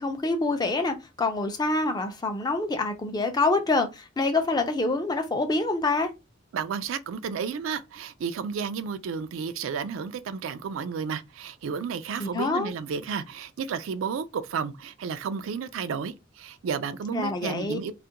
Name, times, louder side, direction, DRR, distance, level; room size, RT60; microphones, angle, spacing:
voice 1, 0.0-6.1 12.2-12.7 17.1-17.8, left 3 dB, 20° left, 0.4 m, -26 dB
voice 2, 6.5-17.9, right 6 dB, 85° right, 0.3 m, -32 dB
2.4 x 2.1 x 2.7 m
head